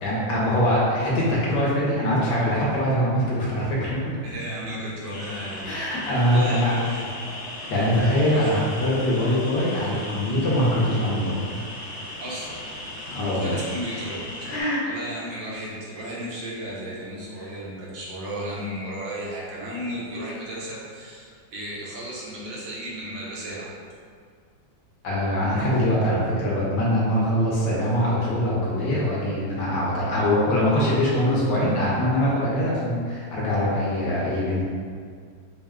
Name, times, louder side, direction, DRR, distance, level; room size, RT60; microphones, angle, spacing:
voice 1, 0.0-4.0 5.7-6.7 7.7-11.4 13.1-13.5 14.5-14.8 25.0-34.6, equal, 65° left, -6 dB, 1.4 m, -23 dB
voice 2, 4.2-7.1 8.3-8.7 12.2-12.7 13.2-14.5 14.9-23.7, equal, 80° right, -6 dB, 1.7 m, -34 dB
sound 1, 5.1-14.6, left 1 dB, 85° left, 0.6 m, -37 dB
4.5 x 2.1 x 3.5 m, 2.1 s
omnidirectional pair, 2.1 m